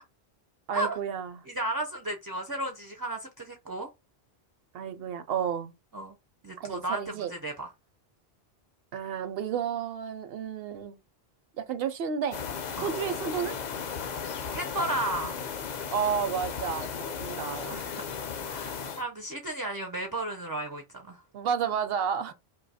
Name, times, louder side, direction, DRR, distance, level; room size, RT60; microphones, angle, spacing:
voice 1, 0.7-1.4 4.7-5.7 6.6-7.3 8.9-11.0 11.6-12.4 12.8-13.6 15.9-17.8 21.3-22.3, right 7 dB, 70° right, 0.7 m, -31 dB
voice 2, 1.5-3.9 5.9-6.1 6.4-7.7 12.8-12.9 14.5-15.4 17.7-18.0 18.4-21.2, right 1 dB, 35° right, 0.3 m, -34 dB
sound 1, 12.3-19.0, left 6 dB, 55° left, 0.6 m, -35 dB
2.6 x 2.3 x 4.0 m
omnidirectional pair, 1.1 m